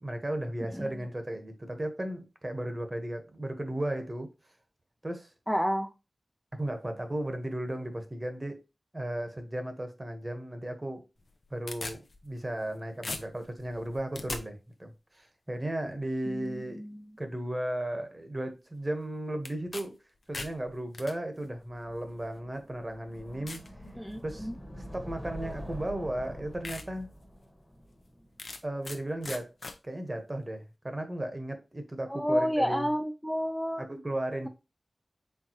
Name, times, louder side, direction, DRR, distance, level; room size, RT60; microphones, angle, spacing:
voice 1, 0.0-4.3 5.0-5.3 6.5-8.6 8.9-11.0 11.5-16.8 17.2-20.0 20.3-23.6 24.2-24.5 24.9-27.1 28.6-29.5 29.8-32.9 33.8-34.5, right 1 dB, 30° right, 1.1 m, -35 dB
voice 2, 5.5-5.9 16.3-17.0 24.0-24.5 32.1-33.9, equal, 5° left, 0.4 m, -30 dB
sound 1, 11.2-12.7 13.0-14.4 19.4-19.8 20.2-21.1 22.0-22.1 22.7-22.8 23.5-23.7 24.2-24.6 25.7-25.8 26.2-26.3 26.6-26.9 27.3-27.4 28.4-29.0 29.2-29.8, left 3 dB, 65° left, 0.6 m, -39 dB
sound 2, 21.7-28.7, equal, 20° left, 1.1 m, -45 dB
4.5 x 3.5 x 2.9 m
wide cardioid pair, 55°, 0 cm